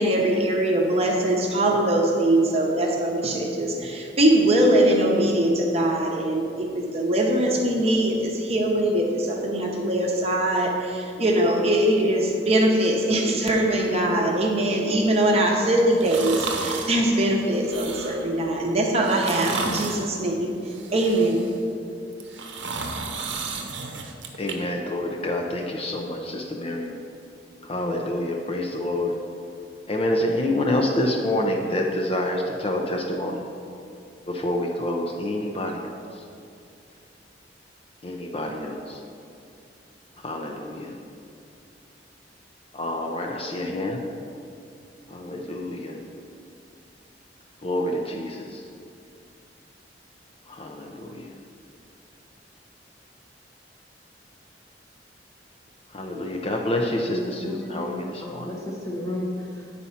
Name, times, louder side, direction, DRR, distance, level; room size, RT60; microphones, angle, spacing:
voice 1, 0.0-20.5 20.9-21.5, right 1 dB, 35° right, 0 dB, 0.8 m, -22 dB
sound 1, 16.0-17.0 17.5-18.3 19.0-20.1 20.7-21.6 22.1-24.6 25.0-25.1, right 4 dB, 80° right, 0.8 m, -33 dB
voice 2, 24.4-27.0 27.6-29.1 29.9-33.4 34.3-36.2 38.0-39.0 40.2-40.9 42.7-44.0 45.1-46.0 47.6-48.7 50.5-51.3 55.9-58.5, left 1 dB, 30° left, 0 dB, 0.5 m, -28 dB
voice 3, 57.1-59.7, left 1 dB, 15° left, -2 dB, 1.1 m, -33 dB
8.5 x 4.2 x 5.7 m, 2.5 s
head